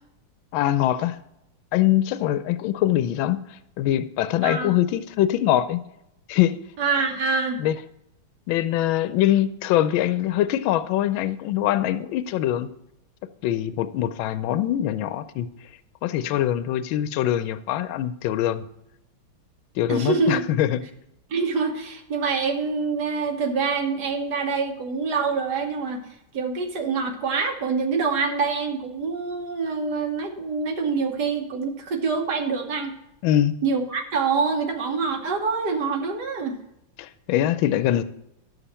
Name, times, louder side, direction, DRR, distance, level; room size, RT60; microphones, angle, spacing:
voice 1, 0.5-1.2 1.7-5.8 6.3-6.5 7.6-7.7 8.5-12.7 13.4-15.5 16.0-18.6 19.8-20.8 33.2-33.6 37.0-38.0, left 12 dB, 85° left, 13 dB, 1.4 m, -23 dB
voice 2, 4.4-4.7 6.8-7.6 19.9-20.4 21.3-33.0 33.6-36.6, right 4 dB, 60° right, 4 dB, 1.6 m, -25 dB
10.5 x 7.1 x 4.2 m, 0.83 s
omnidirectional pair, 2.1 m